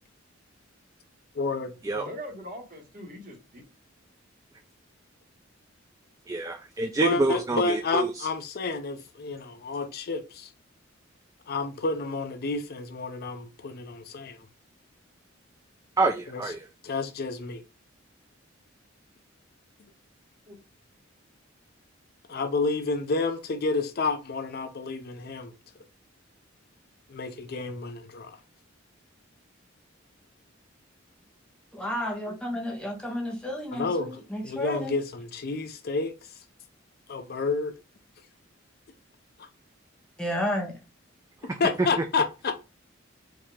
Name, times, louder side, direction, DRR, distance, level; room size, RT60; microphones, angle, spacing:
voice 1, 1.3-2.1 7.0-10.5 11.5-14.4 16.3-16.4 16.8-17.6 22.3-25.5 27.1-28.4 33.7-34.1 34.4-36.1 37.1-37.7 39.4-39.5 41.6-42.6, left 3 dB, 50° left, 0.5 m, -30 dB
voice 2, 2.0-3.6 20.5-20.6 32.0-32.3, equal, 45° right, 1.6 m, -42 dB
voice 3, 6.3-8.3 16.0-16.7 41.4-41.6 42.0-42.1, right 2 dB, 15° right, 0.4 m, -27 dB
voice 4, 31.7-34.9 40.2-40.7, left 1 dB, 5° left, 1.1 m, -31 dB
4.7 x 2.8 x 3.5 m
head